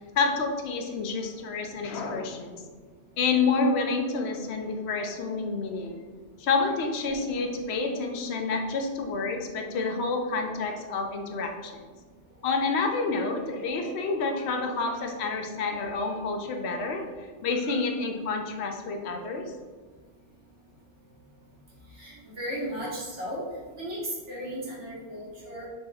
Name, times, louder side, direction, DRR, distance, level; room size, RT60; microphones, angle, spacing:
voice 1, 0.2-2.6 3.2-6.0 6.4-11.8 12.4-19.5, left 4 dB, 70° left, 4 dB, 0.8 m, -29 dB
voice 2, 21.9-23.4 23.8-25.7, equal, 80° right, -7 dB, 1.8 m, -35 dB
5.9 x 2.1 x 3.4 m, 1.4 s
omnidirectional pair, 1.2 m